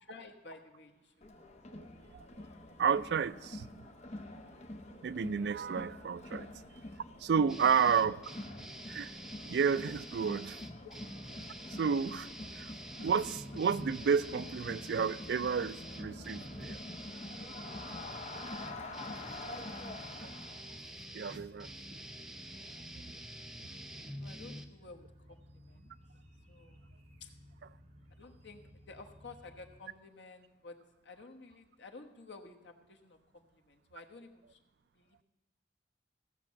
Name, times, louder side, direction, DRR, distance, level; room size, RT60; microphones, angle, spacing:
voice 1, 0.1-1.3 7.6-8.0 10.8-11.0 22.7-22.9 24.0-25.9 26.5-26.9 27.2-27.3 28.1-30.8 31.0-34.6 34.9-35.2, left 3 dB, 75° left, 4 dB, 1.2 m, -53 dB
Crowd, 1.2-20.6, left 2 dB, 35° left, 0.9 m, -47 dB
voice 2, 2.8-3.7 5.0-6.5 7.2-8.2 8.9-9.1 9.4-10.6 11.7-12.3 12.6-12.7 13.0-16.8 18.3-18.5 20.2-20.3 20.7-20.8 21.1-21.7, right 6 dB, 65° right, 16 dB, 0.3 m, -31 dB
sound 1, 7.5-24.7, right 1 dB, 5° right, 0.5 m, -47 dB
sound 2, 12.4-29.8, equal, 35° right, 1.0 m, -58 dB
15.5 x 6.0 x 7.3 m, 1.1 s
head